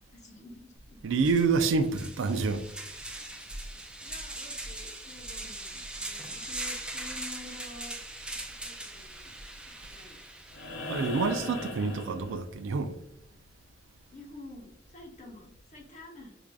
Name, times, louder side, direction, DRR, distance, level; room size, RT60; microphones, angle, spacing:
voice 1, 0.1-1.0 4.0-8.0 8.3-9.3 9.7-10.2 14.1-16.4, left 2 dB, 40° left, 0.8 m, -49 dB
sound 1, 0.8-0.9 1.2-10.8, right 1 dB, 5° right, 0.3 m, -40 dB
voice 2, 1.0-2.6 10.9-13.0, right 4 dB, 80° right, 0.4 m, -27 dB
sound 2, 10.5-12.8 14.7-14.8, left 2 dB, 90° left, 0.6 m, -38 dB
4.7 x 2.4 x 2.2 m
head